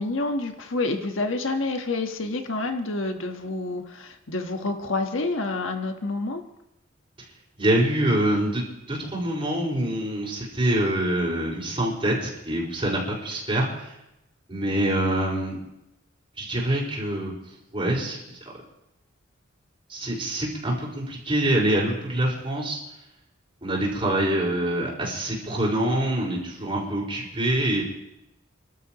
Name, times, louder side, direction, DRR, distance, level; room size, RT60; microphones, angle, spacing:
voice 1, 0.0-6.4, left 2 dB, 75° left, 5 dB, 1.4 m, -28 dB
voice 2, 7.6-8.6 8.9-13.9 14.5-15.6 16.4-17.3 17.7-18.2 19.9-22.8 23.6-27.8, right 1 dB, 30° right, -2 dB, 4.9 m, -25 dB
29.0 x 12.5 x 3.0 m, 0.90 s
head